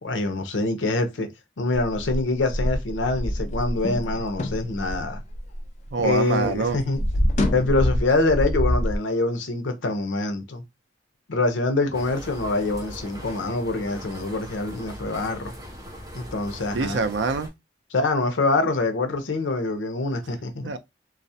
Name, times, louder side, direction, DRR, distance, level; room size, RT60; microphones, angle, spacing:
voice 1, 0.0-1.3 1.6-5.2 6.0-7.0 7.5-10.6 11.3-15.5 16.1-17.0 17.9-20.7, left 2 dB, 90° left, 0.6 m, -25 dB
sound 1, 1.7-6.2 6.4-9.0, left 1 dB, 40° left, 0.4 m, -26 dB
voice 2, 5.9-6.8 16.7-17.5 20.6-20.8, right 4 dB, 75° right, 0.4 m, -25 dB
sound 2, 11.9-17.5, equal, 20° right, 0.6 m, -40 dB
2.3 x 2.0 x 2.6 m
head